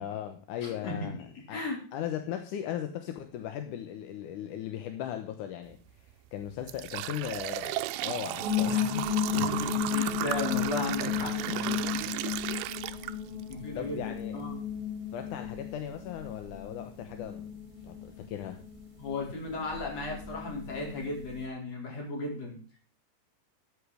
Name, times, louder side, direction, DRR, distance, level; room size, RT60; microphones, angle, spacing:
voice 1, 0.0-1.6 1.9-9.1 13.8-14.4 15.1-17.5 17.8-18.6, left 10 dB, 70° left, 6 dB, 2.2 m, -38 dB
voice 2, 0.6-1.8 9.3-12.1 13.5-14.6 19.0-22.6, left 2 dB, 45° left, -1 dB, 5.3 m, -36 dB
sound 1, 5.7-5.9 6.4-13.5 14.0-14.1 15.0-15.1 15.6-15.7 16.1-16.3, right 15 dB, 85° right, 2.6 m, -35 dB
sound 2, 8.4-21.4, left 8 dB, 10° right, 2.9 m, -34 dB
13.0 x 8.4 x 5.0 m, 0.41 s
omnidirectional pair, 4.3 m